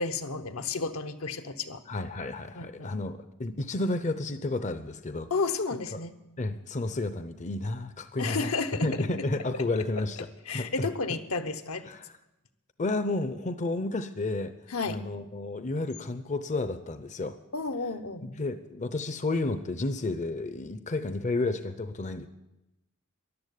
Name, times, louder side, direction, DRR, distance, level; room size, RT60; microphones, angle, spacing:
voice 1, 0.0-1.8 2.5-2.9 5.3-6.1 8.2-8.9 10.5-11.9 14.7-15.0 17.5-18.2, left 4 dB, 75° left, 7 dB, 1.1 m, -32 dB
voice 2, 1.9-5.3 5.9-6.0 6.4-8.5 8.8-10.3 10.5-10.9 11.9-12.2 12.8-14.5 14.8-17.4 18.2-22.3, left 2 dB, 35° left, 10 dB, 0.6 m, -31 dB
14.0 x 11.5 x 8.3 m, 0.95 s
head